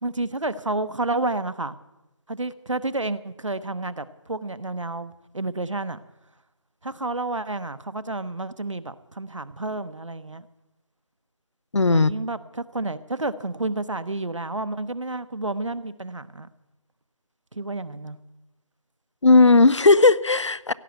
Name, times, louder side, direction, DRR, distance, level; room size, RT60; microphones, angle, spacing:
voice 1, 0.0-1.8 2.3-6.0 6.8-10.5 11.9-16.5 17.5-18.2, right 2 dB, 70° right, 13 dB, 0.9 m, -30 dB
voice 2, 11.7-12.1 19.2-20.7, left 3 dB, 65° left, 20 dB, 0.5 m, -16 dB
17.0 x 6.9 x 9.1 m, 0.99 s
figure-of-eight pair, 175°, 17 cm